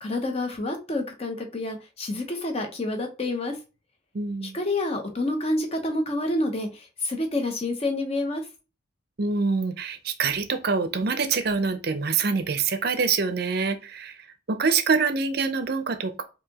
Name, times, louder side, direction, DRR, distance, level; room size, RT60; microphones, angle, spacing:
voice 1, 0.0-3.6 4.4-8.4, left 2 dB, 30° left, 0.7 m, -28 dB
voice 2, 4.1-4.6 9.2-14.2 14.5-16.2, right 5 dB, 50° right, 0.5 m, -25 dB
4.7 x 2.8 x 2.8 m
head